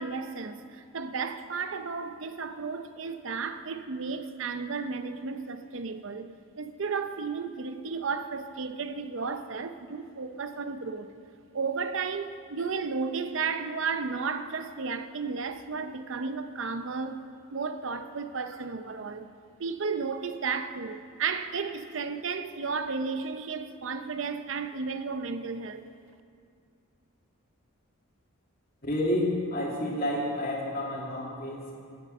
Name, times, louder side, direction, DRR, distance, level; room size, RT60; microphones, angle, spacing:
voice 1, 0.0-6.3 6.6-11.1 11.5-17.2 17.5-19.3 19.6-25.8, right 5 dB, 60° right, 0.6 m, -33 dB
voice 2, 28.8-31.7, left 1 dB, 40° left, 2.5 m, -30 dB
17.0 x 9.0 x 6.6 m
head